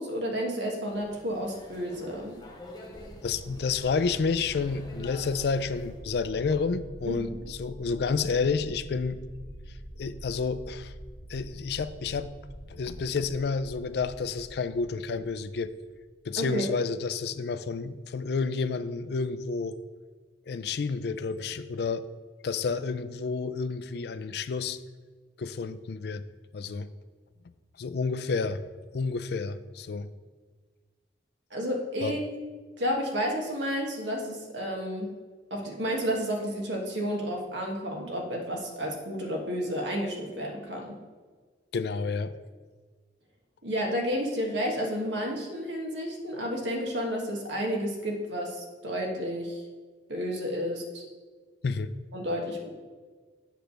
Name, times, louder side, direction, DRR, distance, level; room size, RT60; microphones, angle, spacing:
voice 1, 0.0-2.4 7.1-7.3 16.4-16.6 31.5-32.2 32.8-35.1 35.5-41.0 43.6-49.6 50.1-51.0 52.1-52.7, equal, 80° right, 1 dB, 1.4 m, -31 dB
sound 1, 0.9-6.0, left 1 dB, 20° left, 1.0 m, -48 dB
sound 2, 2.9-15.9, equal, 35° right, 1.6 m, -45 dB
voice 2, 3.2-9.2 10.0-10.9 11.3-12.3 12.7-15.7 16.2-19.8 20.5-22.0 22.4-24.8 25.4-26.2 26.5-26.9 27.8-28.6 28.9-30.1 32.0-32.2 41.7-42.4 51.6-51.9, left 4 dB, 60° left, 13 dB, 0.4 m, -30 dB
7.9 x 3.3 x 6.5 m, 1.5 s
head